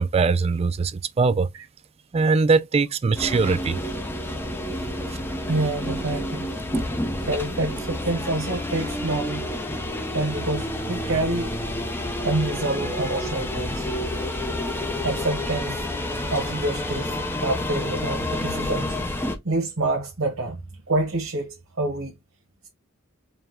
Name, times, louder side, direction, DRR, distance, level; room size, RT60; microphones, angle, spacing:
voice 1, 0.0-1.5 2.1-3.8 5.1-5.2 6.7-6.8, right 4 dB, 30° right, 0.3 m, -21 dB
sound 1, 3.2-19.4, left 1 dB, 10° left, 0.6 m, -29 dB
voice 2, 5.5-6.5 7.2-9.5 10.1-11.5 12.2-13.9 15.0-15.8 16.3-19.0 19.4-20.6 20.9-22.1, right 2 dB, 85° right, 1.1 m, -27 dB
4.8 x 2.2 x 3.7 m
head